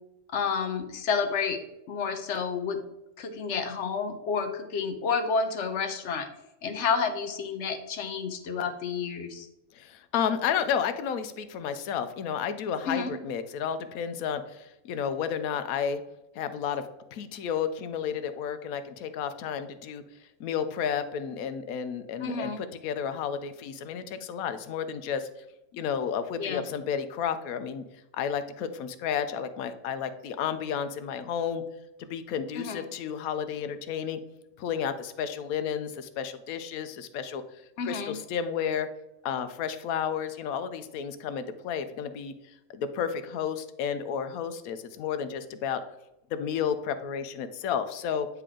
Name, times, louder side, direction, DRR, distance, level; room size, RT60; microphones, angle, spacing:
voice 1, 0.3-1.6 1.9-2.8 3.2-6.3 6.6-9.5 12.9-13.1 22.2-22.6 26.4-26.6 32.6-32.8 37.8-38.2, left 5 dB, 60° left, 8 dB, 1.0 m, -30 dB
voice 2, 9.7-16.0 16.3-20.0 20.4-25.3 25.7-27.8 28.1-31.6 32.1-34.2 34.6-37.4 37.8-38.9 39.2-42.3 42.7-45.8 46.3-48.3, left 7 dB, 85° left, 10 dB, 1.1 m, -32 dB
9.4 x 3.4 x 3.7 m, 0.89 s
omnidirectional pair, 1.5 m